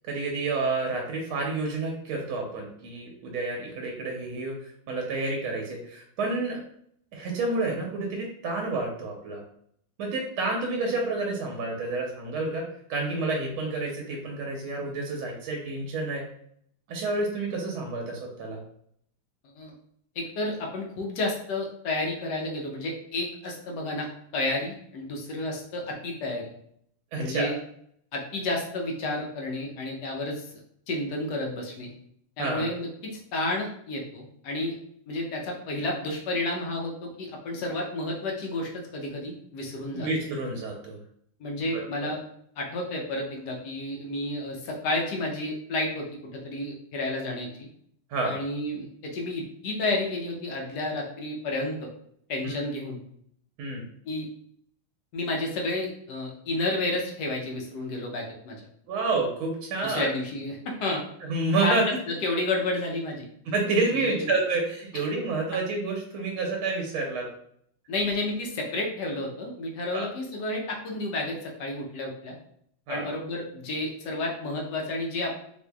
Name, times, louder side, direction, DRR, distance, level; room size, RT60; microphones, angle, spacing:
voice 1, 0.0-6.6 7.1-9.4 10.0-16.3 16.9-18.6 27.1-27.5 32.4-32.7 39.9-41.0 41.7-41.8 48.1-48.4 52.4-52.6 53.6-53.8 58.9-60.1 61.3-62.0 63.5-67.3 69.9-70.1 72.9-73.1, right 3 dB, 90° right, 0 dB, 1.5 m, -29 dB
voice 2, 20.2-24.1 24.3-26.5 27.2-27.6 28.1-30.5 30.9-31.9 32.4-34.7 35.1-40.1 41.4-42.2 42.6-46.1 46.3-47.5 48.2-51.9 52.3-53.0 54.1-54.3 55.1-58.6 59.8-61.0 61.6-61.8 62.1-63.3 63.9-64.3 64.9-65.0 67.9-72.3 72.9-75.3, left 2 dB, 65° left, -1 dB, 1.1 m, -31 dB
4.2 x 2.6 x 2.3 m, 0.67 s
omnidirectional pair, 2.2 m